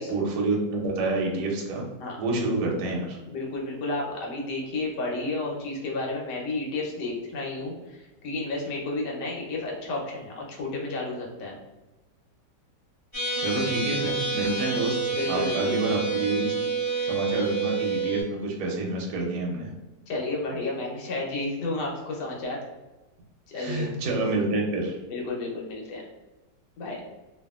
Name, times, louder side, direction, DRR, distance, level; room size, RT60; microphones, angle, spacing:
voice 1, 0.1-1.8 2.1-3.2 13.4-16.5 17.0-19.7 23.5-25.0, right 2 dB, 75° right, -1 dB, 1.2 m, -28 dB
voice 2, 3.3-11.6 15.1-15.8 20.1-22.6 23.5-23.9 25.1-26.0 26.8-27.0, left 2 dB, 75° left, -2 dB, 1.3 m, -31 dB
sound 1, 13.1-18.2, right 4 dB, 20° left, 1.1 m, -28 dB
2.7 x 2.6 x 2.3 m, 1.1 s
omnidirectional pair, 1.9 m